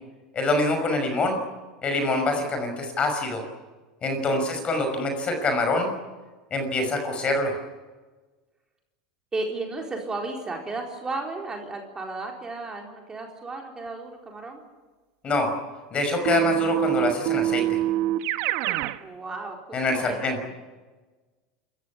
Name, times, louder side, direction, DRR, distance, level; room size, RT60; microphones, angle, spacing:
voice 1, 0.3-1.4 1.8-3.4 4.0-5.9 6.5-7.5 15.2-15.5 15.9-17.6 19.7-20.4, left 2 dB, 30° left, 6 dB, 5.9 m, -25 dB
voice 2, 9.3-14.6 19.0-20.5, right 3 dB, 20° right, 1 dB, 4.2 m, -34 dB
Keyboard (musical), 16.3-19.0, right 15 dB, 60° right, 1.2 m, -25 dB
27.5 x 15.0 x 9.8 m, 1.3 s
supercardioid pair, 115°, 4 cm